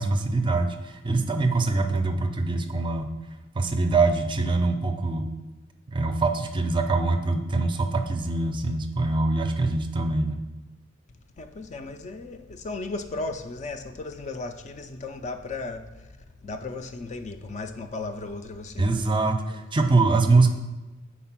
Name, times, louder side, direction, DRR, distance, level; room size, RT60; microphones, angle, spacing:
voice 1, 0.0-3.1 3.5-5.3 5.9-10.4 18.8-20.5, right 3 dB, 25° right, 6 dB, 0.4 m, -23 dB
voice 2, 11.4-19.0 19.5-19.6, left 3 dB, 35° left, 7 dB, 0.4 m, -36 dB
4.7 x 4.3 x 5.7 m, 1.2 s
head